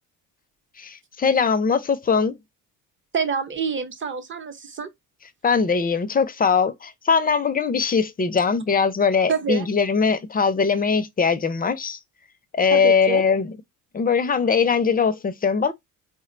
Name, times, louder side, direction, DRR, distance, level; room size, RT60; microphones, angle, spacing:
voice 1, 0.8-2.4 5.4-12.0 12.5-13.5 13.9-15.7, left 5 dB, 20° left, 0.5 m, -21 dB
voice 2, 3.1-4.9 9.3-9.7 12.7-13.2, right 5 dB, 30° right, 0.7 m, -26 dB
3.6 x 2.2 x 2.4 m
supercardioid pair, 75°, 41 cm